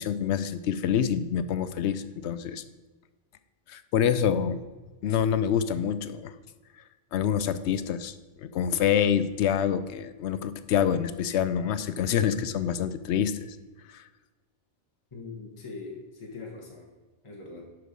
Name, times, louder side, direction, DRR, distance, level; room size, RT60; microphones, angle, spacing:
voice 1, 0.0-2.6 3.7-4.6 5.0-6.3 7.1-13.6 13.9-14.0, left 8 dB, 80° left, 13 dB, 0.9 m, -26 dB
voice 2, 15.1-16.9 17.2-17.7, left 3 dB, 30° left, -2 dB, 1.3 m, -41 dB
11.0 x 4.7 x 5.1 m, 1.3 s
omnidirectional pair, 1.1 m